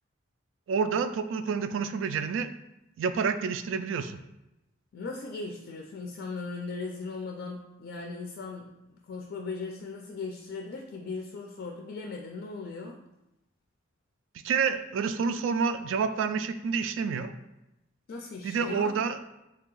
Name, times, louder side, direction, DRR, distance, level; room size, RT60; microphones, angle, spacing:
voice 1, 0.7-2.5 3.0-4.2 14.4-17.3 18.4-19.2, right 5 dB, 80° right, 11 dB, 0.3 m, -28 dB
voice 2, 4.9-13.0 18.1-18.9, left 4 dB, 60° left, 1 dB, 0.4 m, -38 dB
3.3 x 2.8 x 3.8 m, 0.94 s
head